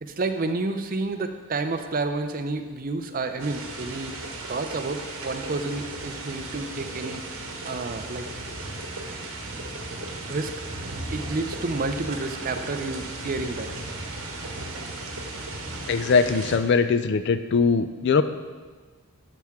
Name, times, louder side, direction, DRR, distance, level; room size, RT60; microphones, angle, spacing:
voice 1, 0.0-4.1 4.5-8.3 10.3-13.7, right 3 dB, 40° right, 8 dB, 0.5 m, -30 dB
sound 1, 3.4-16.6, right 2 dB, 60° right, 1.3 m, -36 dB
voice 2, 15.9-18.2, left 5 dB, 50° left, 11 dB, 0.4 m, -21 dB
12.5 x 5.9 x 3.6 m, 1.4 s
head